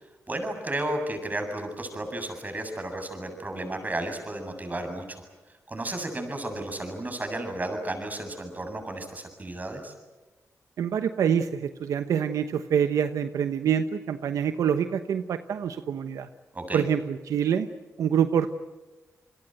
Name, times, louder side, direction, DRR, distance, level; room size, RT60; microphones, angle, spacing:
voice 1, 0.3-5.2 5.7-9.9 16.5-16.9, right 1 dB, 30° right, 6 dB, 7.6 m, -33 dB
voice 2, 10.8-16.3 16.7-17.7 18.0-18.5, right 8 dB, 85° right, 9 dB, 1.0 m, -26 dB
29.0 x 22.0 x 7.9 m, 1.2 s
cardioid pair, 70°, 6 cm